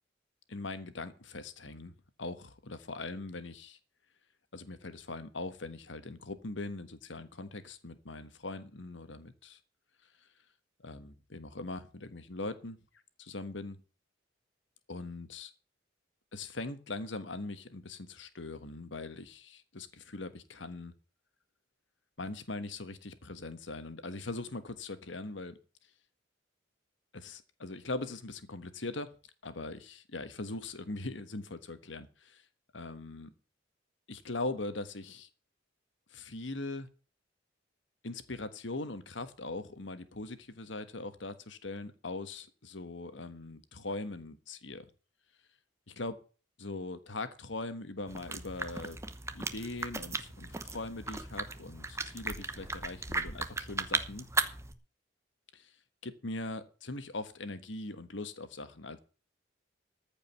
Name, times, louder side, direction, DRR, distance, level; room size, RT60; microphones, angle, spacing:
voice 1, 0.5-1.9 2.2-3.8 4.5-9.6 10.8-12.8 13.2-13.8 14.9-15.5 16.3-20.9 22.2-25.6 27.1-29.1 29.4-32.4 32.7-33.3 34.1-35.3 36.1-36.9 38.0-44.8 45.9-46.2 46.6-49.0 49.3-54.3 55.5-55.7 56.0-59.0, left 2 dB, 75° left, 1.4 m, -41 dB
sound 1, 48.1-54.7, right 3 dB, 15° right, 0.9 m, -36 dB
14.5 x 5.3 x 9.2 m
head